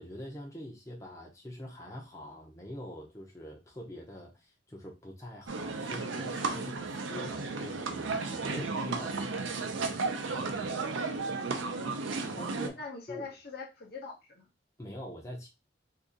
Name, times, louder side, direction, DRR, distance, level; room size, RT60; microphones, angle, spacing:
voice 1, 0.0-10.0 10.3-10.8 12.3-12.8 13.1-13.2 14.8-15.5, equal, 15° left, -2 dB, 0.7 m, -44 dB
sound 1, 5.5-12.7, right 4 dB, 85° right, 0.5 m, -34 dB
voice 2, 11.6-12.0 12.8-14.5, left 4 dB, 55° left, 0 dB, 0.9 m, -43 dB
2.8 x 2.5 x 3.7 m, 0.25 s
head